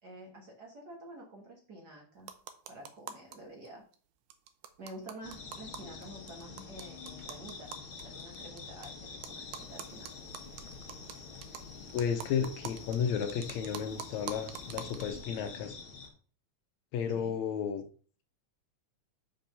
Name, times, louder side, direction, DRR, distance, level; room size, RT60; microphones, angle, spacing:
voice 1, 0.0-2.3 2.7-3.8 4.8-10.1 17.1-17.3, right 1 dB, 40° right, -1 dB, 1.9 m, -49 dB
sound 1, 2.2-3.4 3.7-3.8 3.9-4.0 4.3-8.9 9.2-15.2, right 8 dB, 90° right, 2.2 m, -46 dB
sound 2, 5.2-16.1, left 5 dB, 50° left, 2.2 m, -47 dB
voice 2, 11.9-15.8 16.9-17.8, left 7 dB, 75° left, 8 dB, 2.0 m, -33 dB
5.9 x 5.4 x 5.3 m, 0.42 s
omnidirectional pair, 3.3 m